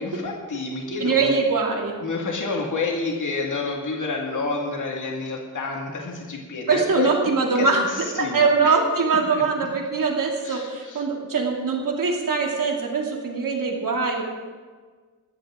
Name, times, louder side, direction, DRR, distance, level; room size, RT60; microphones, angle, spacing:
voice 1, 0.0-1.4 2.0-8.8 9.3-9.4 10.4-11.1, left 3 dB, 65° left, 0 dB, 2.3 m, -29 dB
voice 2, 1.0-2.0 6.7-7.8 8.2-14.2, right 4 dB, 75° right, 0 dB, 2.9 m, -22 dB
21.0 x 15.0 x 3.8 m, 1.5 s
wide cardioid pair, 170°, 33 cm